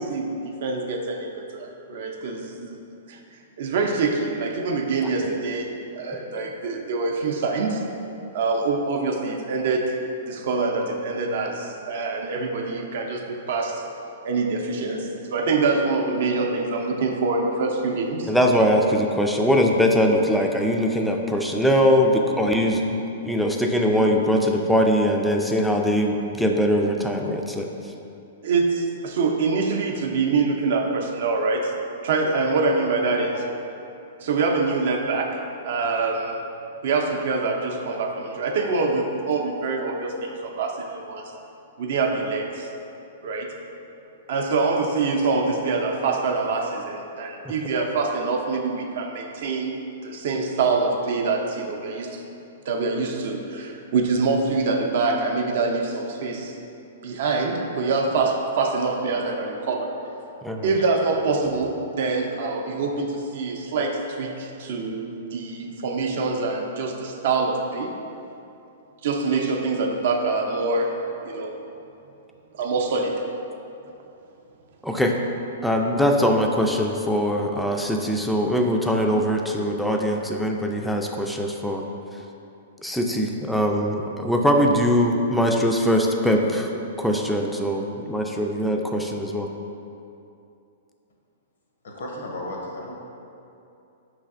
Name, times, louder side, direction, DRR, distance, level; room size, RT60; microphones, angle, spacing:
voice 1, 0.0-2.8 3.1-3.2 3.6-7.8 8.3-10.0 10.3-13.8 14.2-18.3 28.4-31.7 32.0-33.4 34.2-36.3 36.8-41.3 41.8-42.7 43.2-43.5 44.3-49.8 50.0-52.2 52.7-56.6 57.0-60.0 60.6-67.9 69.0-71.6 72.5-73.1, right 3 dB, 65° right, 2 dB, 0.5 m, -25 dB
voice 2, 18.3-27.7 47.4-47.5 60.4-60.7 74.8-75.1 75.6-81.8 82.8-86.7 87.0-89.5, equal, ahead, 1 dB, 0.3 m, -22 dB
voice 3, 91.8-93.1, left 1 dB, 75° left, -1 dB, 0.7 m, -34 dB
5.1 x 3.2 x 2.4 m, 2.7 s
hypercardioid pair, 120°, 0 cm